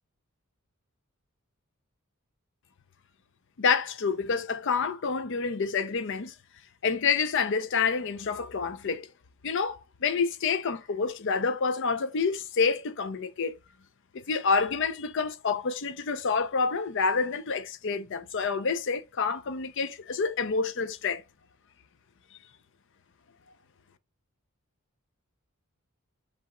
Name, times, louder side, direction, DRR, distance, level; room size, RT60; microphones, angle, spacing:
voice 1, 3.6-6.3 6.8-9.1 9.4-13.6 14.3-21.2, left 5 dB, 60° left, 0.6 m, -28 dB
3.4 x 2.9 x 3.7 m
head